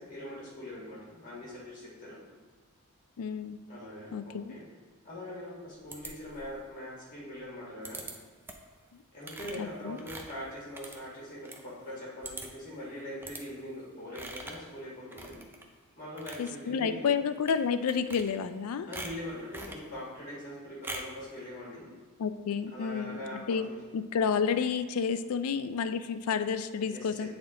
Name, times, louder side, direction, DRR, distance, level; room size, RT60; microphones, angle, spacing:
voice 1, 0.0-2.2 3.7-4.6 5.0-8.0 9.1-15.3 16.0-17.1 18.9-21.8 22.7-23.8 26.9-27.3, left 1 dB, 40° left, -7 dB, 1.8 m, -42 dB
voice 2, 3.2-3.6 4.1-4.6 8.9-9.0 9.6-10.0 16.4-18.9 22.2-23.7 23.9-27.3, left 6 dB, 80° left, 11 dB, 0.4 m, -30 dB
sound 1, 5.9-6.6 7.8-8.1 8.5-8.7 9.2-11.6 11.9-12.0 12.2-12.7 13.2-13.4 14.1-14.7 15.1-15.7 16.0-16.5 17.4-17.6 17.9-18.6 18.9-19.8 20.8-21.2, right 2 dB, 10° right, 0.5 m, -43 dB
8.6 x 3.6 x 3.7 m, 1.4 s
head